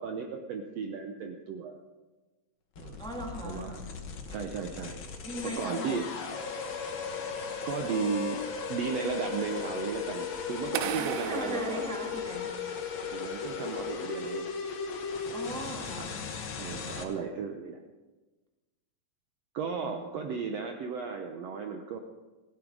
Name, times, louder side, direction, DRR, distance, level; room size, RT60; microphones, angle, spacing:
voice 1, 0.0-1.7 2.8-3.0 3.4-3.8 4.3-5.0 5.4-6.0 7.6-11.9 13.1-14.5 16.0-16.1 16.6-17.8 19.5-22.0, right 6 dB, 70° right, 4 dB, 1.7 m, -35 dB
sound 1, 2.8-17.0, left 6 dB, 55° left, 1.5 m, -37 dB
voice 2, 3.0-3.7 5.2-6.0 11.0-12.5 15.3-16.1 19.8-20.2, right 1 dB, ahead, -1 dB, 1.5 m, -39 dB
sound 2, 10.7-12.8, right 12 dB, 85° right, 1.5 m, -37 dB
16.0 x 12.5 x 4.8 m, 1.2 s
omnidirectional pair, 3.8 m